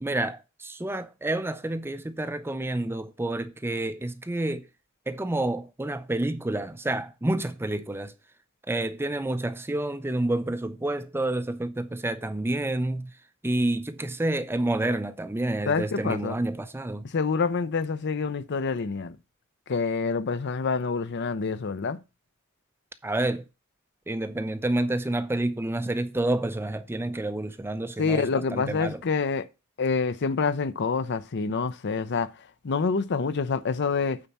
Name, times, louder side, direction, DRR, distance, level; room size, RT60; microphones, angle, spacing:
voice 1, 0.0-4.6 5.1-8.1 8.7-13.1 13.4-17.0 23.0-23.5 24.1-29.0, right 1 dB, 10° right, 0.5 m, -29 dB
voice 2, 15.7-16.4 17.1-19.2 19.7-22.0 28.0-29.5 29.8-34.2, left 4 dB, 55° left, 0.6 m, -27 dB
8.9 x 4.2 x 5.8 m
head